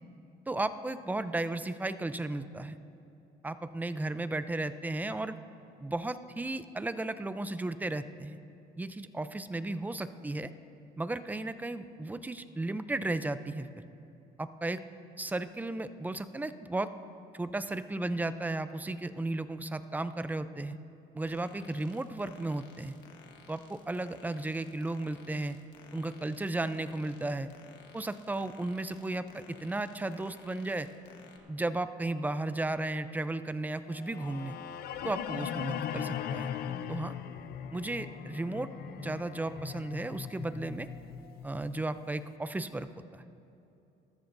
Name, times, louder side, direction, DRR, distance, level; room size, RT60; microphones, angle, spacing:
voice 1, 0.5-2.8 3.4-5.4 5.8-8.4 8.8-10.5 11.0-13.7 14.4-14.8 15.2-16.9 17.3-20.8 21.1-23.0 23.5-25.6 25.9-27.5 27.9-30.9 31.5-34.6 35.0-36.5 36.9-37.2 37.7-38.7 39.0-40.9 41.4-42.9 43.1-43.2, right 2 dB, 10° right, 12 dB, 0.5 m, -34 dB
sound 1, 21.3-31.4, left 5 dB, 80° left, 1.5 m, -56 dB
sound 2, 34.0-42.1, left 9 dB, 65° left, 0.6 m, -39 dB
21.0 x 13.5 x 2.6 m, 2.9 s
cardioid pair, 110°, 17 cm